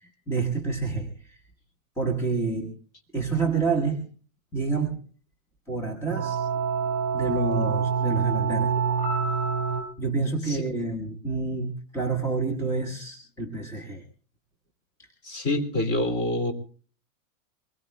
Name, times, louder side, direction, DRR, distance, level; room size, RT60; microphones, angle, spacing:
voice 1, 0.0-1.4 2.0-2.7 3.1-4.1 4.5-5.0 5.7-6.4 7.1-8.8 10.0-14.0, right 4 dB, 5° left, 0 dB, 1.2 m, -28 dB
sound 1, 6.1-9.8, right 6 dB, 40° right, 6.8 m, -26 dB
voice 2, 15.2-16.5, left 1 dB, 25° left, 5 dB, 2.7 m, -26 dB
24.0 x 21.5 x 2.2 m, 0.41 s
supercardioid pair, 155°, 43 cm